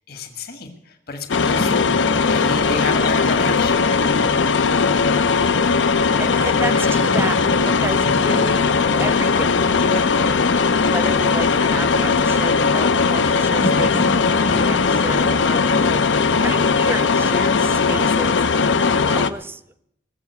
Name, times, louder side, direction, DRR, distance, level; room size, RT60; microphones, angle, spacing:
voice 1, 0.1-1.7 2.1-4.0 15.0-15.2, left 4 dB, 55° left, 6 dB, 1.5 m, -30 dB
sound 1, 1.3-19.3, left 5 dB, 80° left, 0.6 m, -18 dB
sound 2, 1.6-19.3, equal, 35° left, 0.8 m, -34 dB
voice 2, 2.7-3.4 5.9-19.6, right 2 dB, 10° right, 12 dB, 0.5 m, -32 dB
19.5 x 7.2 x 8.2 m, 0.77 s
head